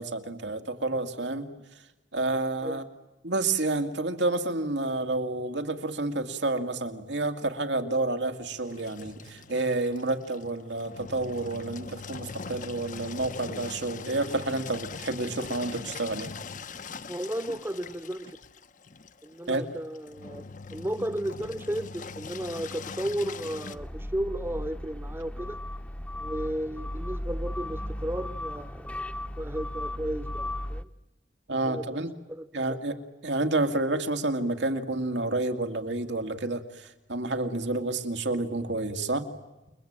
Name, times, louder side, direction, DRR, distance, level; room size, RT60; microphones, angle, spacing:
voice 1, 0.0-1.5 2.1-2.8 3.2-16.3 19.5-19.6 31.5-32.1 32.5-32.9 33.2-39.3, right 2 dB, 85° right, 2.4 m, -29 dB
Engine, 8.6-23.8, left 4 dB, 45° left, 0.9 m, -41 dB
voice 2, 17.1-18.4 19.2-25.6 26.1-29.1 29.4-30.9 31.6-32.8, right 1 dB, 15° right, 1.0 m, -34 dB
sound 1, 23.7-30.8, left 1 dB, 10° left, 0.9 m, -36 dB
29.0 x 22.0 x 8.9 m
head